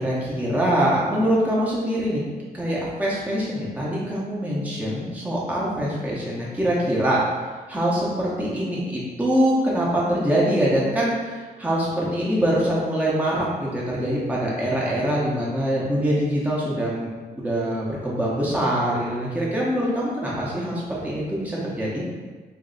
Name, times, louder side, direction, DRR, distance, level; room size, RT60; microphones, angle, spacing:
voice 1, 0.0-2.2 2.5-7.2 7.7-17.1 17.4-22.0, equal, 10° right, -6 dB, 0.8 m, -24 dB
3.1 x 2.6 x 3.9 m, 1.4 s
cardioid pair, 90°, 17 cm